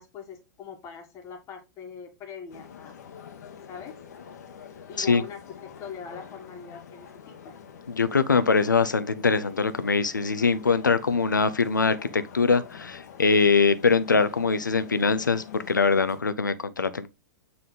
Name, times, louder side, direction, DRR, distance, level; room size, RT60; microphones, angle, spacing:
voice 1, 0.0-3.0 3.7-4.0 4.9-7.6, left 6 dB, 30° left, 1.7 m, -42 dB
sound 1, 2.5-16.2, left 7 dB, 60° left, 1.2 m, -46 dB
voice 2, 7.9-17.1, left 4 dB, 80° left, 0.6 m, -23 dB
6.8 x 3.6 x 3.8 m
figure-of-eight pair, 100°, 10 cm